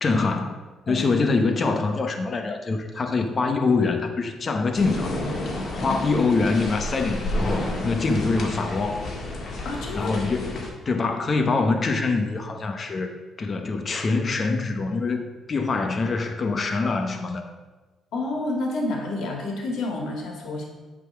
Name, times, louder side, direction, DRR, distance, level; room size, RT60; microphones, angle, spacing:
voice 1, 0.0-0.6 0.9-5.2 5.7-9.0 10.0-13.1 13.4-17.4, left 3 dB, 40° left, 5 dB, 0.9 m, -24 dB
sound 1, 4.7-10.7, left 1 dB, 55° left, 1.6 m, -30 dB
voice 2, 9.6-10.1 18.1-20.7, left 2 dB, 75° left, 1 dB, 1.9 m, -29 dB
8.0 x 3.8 x 6.1 m, 1.3 s
cardioid pair, 90°, 0 cm